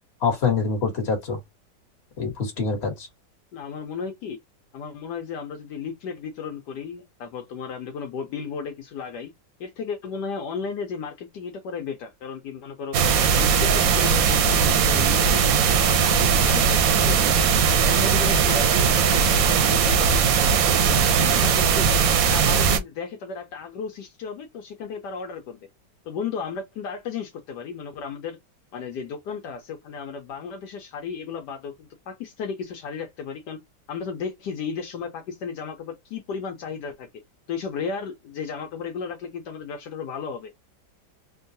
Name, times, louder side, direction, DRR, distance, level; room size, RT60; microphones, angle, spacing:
voice 1, 0.2-1.4 2.2-3.1, left 5 dB, 40° left, 1.4 m, -25 dB
voice 2, 3.5-4.4 4.7-9.3 9.6-13.0 13.3-17.6 17.9-25.7 26.0-28.4 28.7-33.6 33.9-37.1 37.5-40.7, left 5 dB, 75° left, 1.3 m, -34 dB
sound 1, 12.9-22.8, right 6 dB, 65° right, 0.9 m, -19 dB
3.6 x 2.3 x 2.6 m
omnidirectional pair, 1.9 m